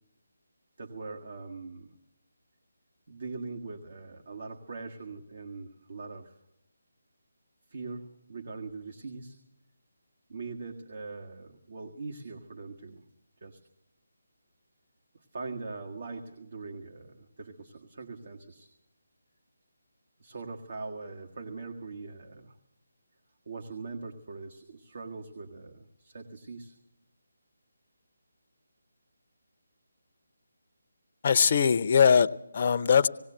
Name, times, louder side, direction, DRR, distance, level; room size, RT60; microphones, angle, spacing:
voice 1, 0.8-1.9 3.1-6.4 7.7-9.4 10.3-13.0 13.4-13.6 15.1-18.7 20.2-22.6 23.4-26.7, right 3 dB, 60° right, 3 dB, 1.7 m, -41 dB
voice 2, 31.2-33.1, left 6 dB, 40° left, 11 dB, 0.7 m, -21 dB
18.5 x 18.0 x 7.8 m, 0.86 s
figure-of-eight pair, 155°, 0 cm